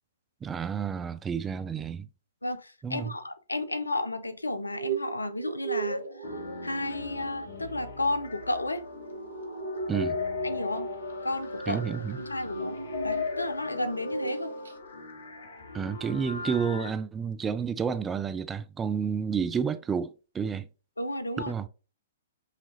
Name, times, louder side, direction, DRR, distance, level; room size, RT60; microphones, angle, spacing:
voice 1, 0.4-2.1 2.8-3.1 9.9-10.2 11.7-12.2 15.7-20.7 21.5-21.7, right 6 dB, 15° right, 0.3 m, -30 dB
voice 2, 2.4-6.0 6.6-8.8 10.4-10.9 11.2-11.8 12.2-12.8 13.0-14.5 21.0-21.5, left 2 dB, 85° left, 0.5 m, -32 dB
sound 1, 4.5-13.8 14.1-14.4 14.7-14.8, right 4 dB, 70° right, 0.7 m, -38 dB
sound 2, 6.2-16.9, left 4 dB, 65° left, 0.9 m, -38 dB
5.6 x 2.9 x 2.6 m
figure-of-eight pair, 115°, 0 cm